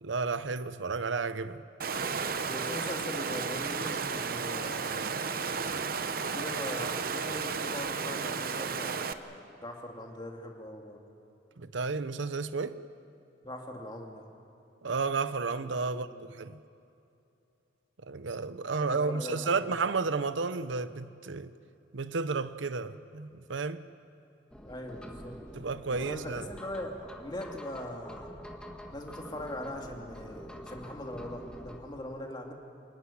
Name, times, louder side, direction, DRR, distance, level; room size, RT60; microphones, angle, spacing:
voice 1, 0.0-1.6 11.6-12.8 14.8-16.1 16.4-16.6 18.0-21.5 21.9-23.8 25.5-26.4, right 4 dB, 85° right, 0.8 m, -32 dB
Water, 1.8-9.1, right 5 dB, 50° right, 0.9 m, -33 dB
voice 2, 2.4-5.4 6.3-11.0 13.4-14.3 15.9-16.3 18.8-19.8 24.6-25.4 25.9-28.3 28.9-32.5, left 1 dB, 25° left, 2.5 m, -41 dB
sound 1, 24.5-31.8, equal, 5° left, 1.6 m, -46 dB
27.5 x 15.5 x 10.0 m
head